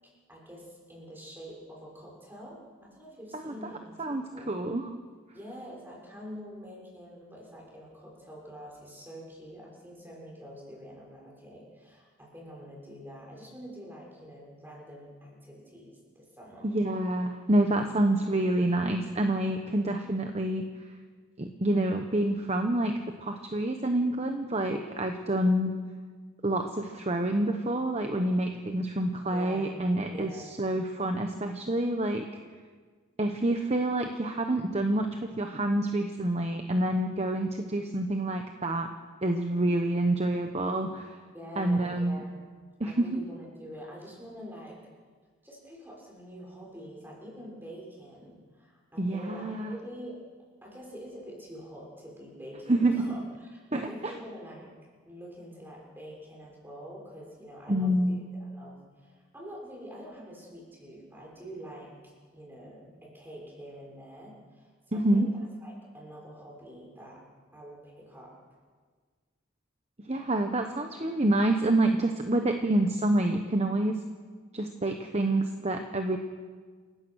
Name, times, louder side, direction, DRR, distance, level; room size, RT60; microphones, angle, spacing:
voice 1, 0.3-4.5 5.3-16.7 29.3-30.6 41.3-42.5 42.8-44.8 45.4-50.2 50.6-54.7 55.0-58.2 58.5-65.3 65.6-67.2 67.5-68.3, equal, 10° right, -3 dB, 6.3 m, -46 dB
voice 2, 4.0-4.9 16.6-20.6 21.4-25.8 26.4-32.2 33.2-38.9 39.2-41.2 41.6-42.2 42.8-43.1 49.0-49.7 52.7-52.9 53.7-54.1 57.7-58.2 64.9-65.3 70.0-74.0 74.5-76.2, right 1 dB, 30° right, 5 dB, 1.0 m, -27 dB
28.5 x 15.5 x 6.4 m, 1.5 s
head